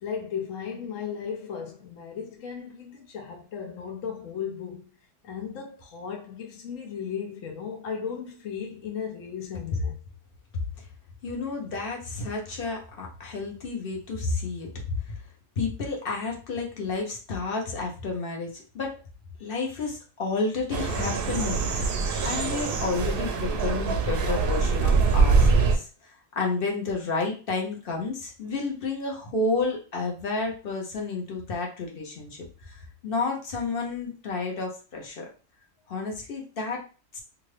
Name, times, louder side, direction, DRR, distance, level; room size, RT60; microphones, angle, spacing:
voice 1, 0.0-4.8 5.2-10.0, left 7 dB, 80° left, 1.1 m, -35 dB
voice 2, 11.2-14.7 15.1-15.2 15.6-18.9 19.4-21.9 22.2-35.2 35.9-36.8 37.1-37.2, left 3 dB, 50° left, 0.9 m, -31 dB
sound 1, 20.7-25.8, right 4 dB, 60° right, 0.6 m, -23 dB
2.7 x 2.5 x 3.2 m
omnidirectional pair, 1.3 m